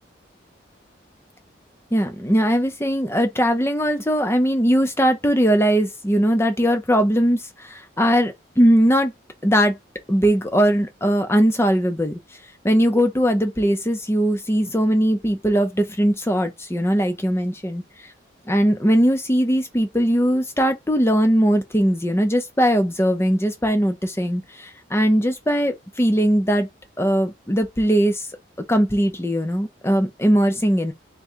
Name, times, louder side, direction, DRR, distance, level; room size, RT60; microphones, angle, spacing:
voice 1, 1.9-9.1 9.4-9.8 10.1-12.2 12.6-18.1 18.5-26.7 27.0-28.2 28.7-30.9, equal, 15° left, 0.6 m, -20 dB
3.6 x 2.2 x 4.4 m
head